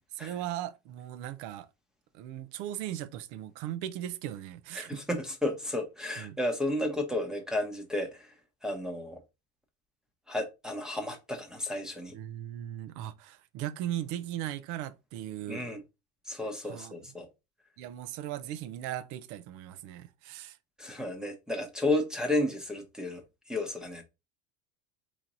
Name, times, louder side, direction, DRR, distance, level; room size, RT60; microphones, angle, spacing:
voice 1, 0.1-1.7 2.1-5.0 6.2-6.4 12.1-15.7 16.6-16.9 17.8-20.6, right 12 dB, 60° right, 0.6 m, -38 dB
voice 2, 4.7-8.3 8.6-9.2 10.3-12.2 15.5-15.8 16.3-17.3 20.8-23.2 23.5-24.0, left 1 dB, ahead, 0.8 m, -32 dB
4.3 x 3.1 x 3.8 m
cardioid pair, 145°, 33 cm